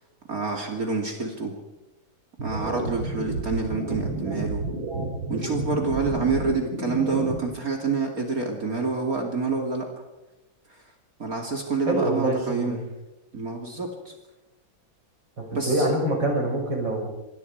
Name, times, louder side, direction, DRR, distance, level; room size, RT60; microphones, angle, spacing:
voice 1, 0.3-1.5 2.4-4.6 5.3-9.9 11.2-12.8 13.3-14.1 15.5-15.9, right 4 dB, 45° right, 1 dB, 3.1 m, -27 dB
sound 1, 2.4-7.4, right 2 dB, 90° right, 4.5 m, -31 dB
voice 2, 11.9-12.8 15.4-17.1, right 1 dB, 70° right, 1 dB, 6.8 m, -25 dB
26.5 x 26.0 x 4.8 m, 0.99 s
omnidirectional pair, 2.2 m